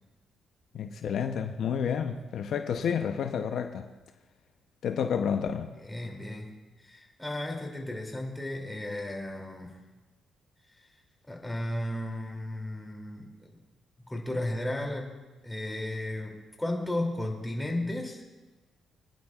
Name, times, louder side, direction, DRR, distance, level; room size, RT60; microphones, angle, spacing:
voice 1, 0.7-3.8 4.8-5.7, left 7 dB, 70° left, 6 dB, 0.7 m, -30 dB
voice 2, 5.9-6.5 6.8-9.8 11.3-13.6 14.0-15.1 15.4-18.2, left 1 dB, 10° left, 0 dB, 2.8 m, -34 dB
26.5 x 10.5 x 2.4 m, 1.2 s
cardioid pair, 90°, 0 cm